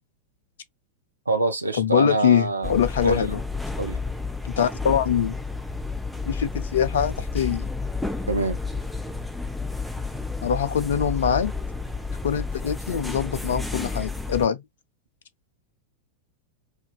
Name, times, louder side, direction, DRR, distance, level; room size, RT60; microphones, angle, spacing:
voice 1, 1.3-2.7 3.0-3.3 3.8-4.0 8.3-8.6, right 2 dB, 80° right, 0.7 m, -25 dB
voice 2, 1.8-3.4 4.6-5.4 6.3-7.7 10.4-11.5 12.2-14.6, left 8 dB, 60° left, 0.6 m, -23 dB
sound 1, 2.6-14.5, left 3 dB, 5° left, 0.7 m, -31 dB
4.7 x 2.7 x 2.3 m
figure-of-eight pair, 90°, 0 cm